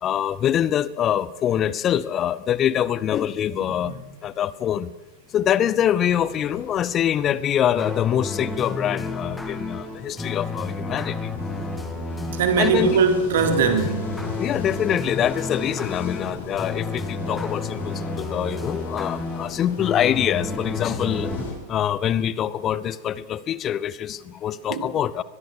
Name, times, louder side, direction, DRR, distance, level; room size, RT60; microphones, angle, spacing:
voice 1, 0.0-3.9 4.2-4.9 5.3-11.3 12.6-12.9 14.4-21.3 21.7-25.2, left 10 dB, 30° left, 0.8 m, -24 dB
sound 1, 6.0-21.5, left 4 dB, 60° left, 7.3 m, -38 dB
sound 2, 7.8-21.4, left 3 dB, 5° left, 2.7 m, -32 dB
voice 2, 12.3-14.1 24.7-24.9, right 5 dB, 55° right, 3.8 m, -21 dB
23.0 x 21.5 x 6.6 m
figure-of-eight pair, 90°, 0 cm